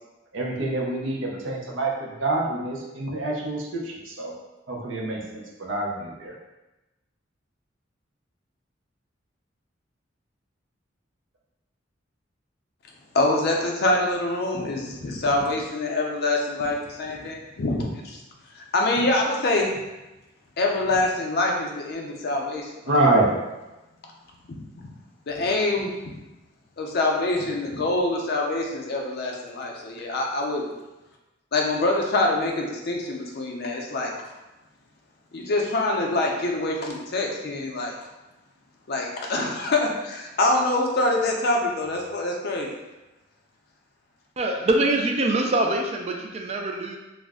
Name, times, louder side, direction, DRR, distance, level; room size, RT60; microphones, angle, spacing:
voice 1, 0.3-4.3 4.7-6.3 22.9-23.3, right 2 dB, 75° right, -2 dB, 0.6 m, -26 dB
voice 2, 13.1-18.2 18.6-19.7 20.6-23.0 24.5-24.9 25.3-25.9 26.8-30.7 31.5-34.1 35.3-37.9 38.9-42.7, left 2 dB, 55° left, 0 dB, 0.5 m, -25 dB
voice 3, 44.4-47.0, right 2 dB, 35° right, 2 dB, 0.3 m, -24 dB
2.4 x 2.0 x 3.5 m, 1.0 s
head